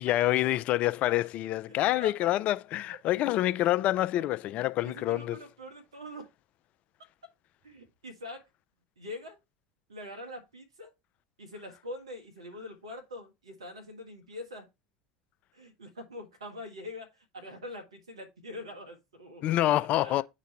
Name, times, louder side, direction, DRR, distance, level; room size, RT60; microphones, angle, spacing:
voice 1, 0.0-5.4 19.4-20.2, left 14 dB, 50° left, 0.4 m, -27 dB
voice 2, 1.7-2.3 4.1-4.3 4.8-6.3 7.6-8.4 9.0-9.4 9.9-10.9 11.4-14.7 15.5-19.6 19.9-20.2, left 1 dB, 80° right, 1.2 m, -44 dB
9.2 x 3.1 x 4.1 m
hypercardioid pair, 75°, 3 cm